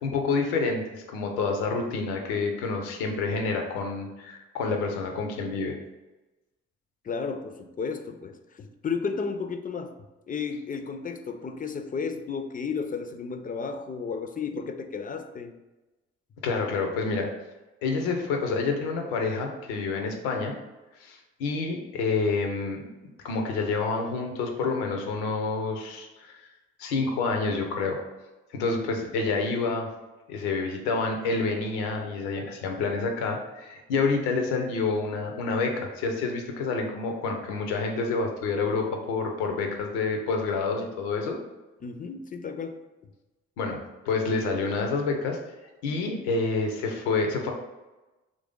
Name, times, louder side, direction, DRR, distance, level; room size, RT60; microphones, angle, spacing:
voice 1, 0.0-5.8 16.4-17.3 17.8-20.5 21.0-22.9 23.2-26.4 26.8-28.0 28.5-29.9 30.3-41.4 43.6-43.8 44.0-45.4 45.8-47.5, left 4 dB, 85° left, 3 dB, 0.5 m, -28 dB
voice 2, 7.0-9.9 10.3-15.5 28.8-29.3 41.8-42.8, left 5 dB, 30° left, 7 dB, 0.4 m, -33 dB
3.1 x 2.6 x 3.6 m, 1.1 s
hypercardioid pair, 40°, 31 cm